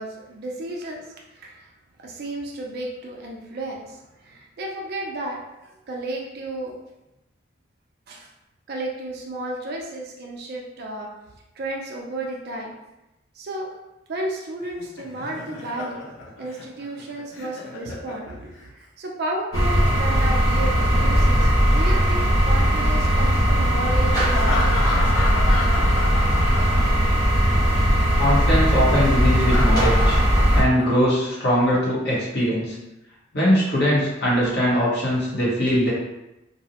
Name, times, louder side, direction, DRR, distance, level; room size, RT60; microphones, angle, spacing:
voice 1, 0.0-1.7 2.0-5.4 5.9-6.8 8.1-8.3 8.7-11.1 11.6-12.8 13.3-13.7 14.1-16.0 16.4-25.1, right 1 dB, 55° right, 0 dB, 0.4 m, -33 dB
Laughter, 14.6-18.7 20.4-22.5 24.2-27.3 27.5-27.7 29.2-31.3, left 3 dB, 90° left, 0.6 m, -32 dB
sound 1, 19.5-30.6, equal, 20° left, 0.6 m, -19 dB
voice 2, 28.2-30.2 30.5-32.8 33.3-35.9, equal, 60° left, -6 dB, 0.9 m, -21 dB
2.6 x 2.0 x 2.8 m, 0.94 s
head